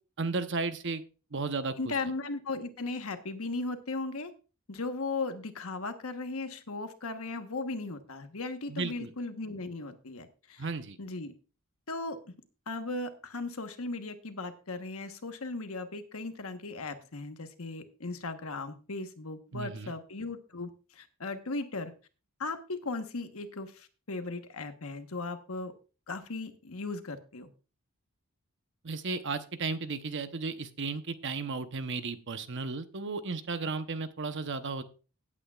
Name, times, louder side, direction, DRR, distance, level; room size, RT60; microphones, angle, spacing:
voice 1, 0.2-1.0 1.3-1.9 8.7-9.1 10.6-11.0 19.5-19.9 28.8-34.8, right 4 dB, 55° right, 10 dB, 0.9 m, -34 dB
voice 2, 1.8-4.3 4.7-10.7 11.0-11.3 11.9-12.2 12.7-21.9 22.4-25.7 26.1-27.5, left 3 dB, 70° left, 8 dB, 1.2 m, -37 dB
17.0 x 8.6 x 2.4 m, 0.34 s
head